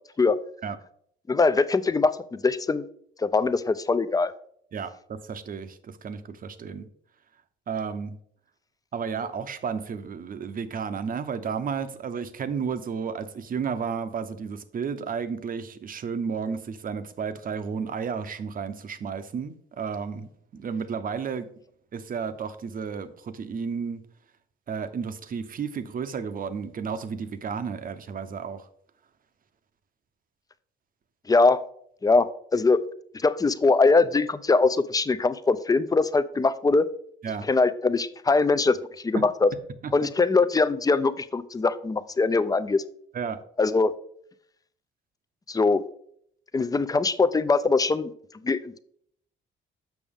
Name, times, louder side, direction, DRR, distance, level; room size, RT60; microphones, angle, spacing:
voice 1, 1.3-2.8 3.2-4.3 31.3-31.6 32.0-32.3 32.5-32.8 33.2-36.9 37.5-38.8 39.0-39.5 39.9-42.8 43.6-43.9 45.5-45.8 46.5-48.1 48.4-48.8, left 3 dB, 20° left, 14 dB, 0.4 m, -22 dB
voice 2, 4.7-6.9 7.7-8.2 8.9-21.5 21.9-24.0 24.7-28.7 37.2-37.5 39.1-39.2 39.8-39.9 43.1-43.4, right 6 dB, 45° right, 11 dB, 0.7 m, -32 dB
7.0 x 6.0 x 3.6 m, 0.66 s
cardioid pair, 90°, 20 cm